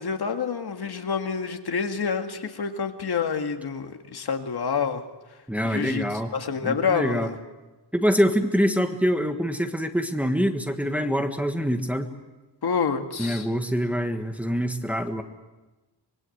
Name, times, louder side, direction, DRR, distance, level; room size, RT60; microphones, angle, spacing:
voice 1, 0.0-5.0 5.6-6.0 6.3-7.4 12.6-13.5, left 6 dB, 65° left, 6 dB, 2.0 m, -27 dB
voice 2, 5.5-6.3 6.6-7.3 7.9-12.1 13.2-15.2, equal, 5° right, 5 dB, 1.5 m, -25 dB
25.5 x 22.0 x 7.9 m, 1.1 s
wide cardioid pair, 140°, 42 cm